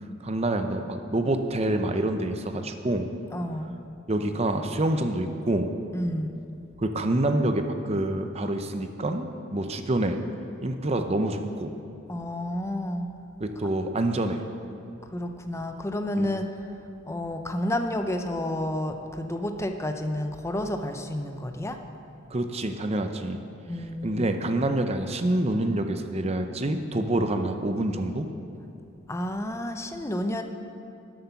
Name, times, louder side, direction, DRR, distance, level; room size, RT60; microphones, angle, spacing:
voice 1, 0.2-3.1 4.1-5.7 6.8-10.2 10.6-11.7 13.4-14.4 16.2-16.3 22.3-23.4 24.0-28.3, right 1 dB, 30° right, 7 dB, 0.6 m, -27 dB
voice 2, 3.3-3.8 5.9-6.4 12.1-13.1 15.1-16.5 17.1-21.8 23.7-24.3 29.1-30.4, left 1 dB, 15° left, 6 dB, 0.6 m, -30 dB
12.5 x 7.9 x 5.7 m, 2.7 s
head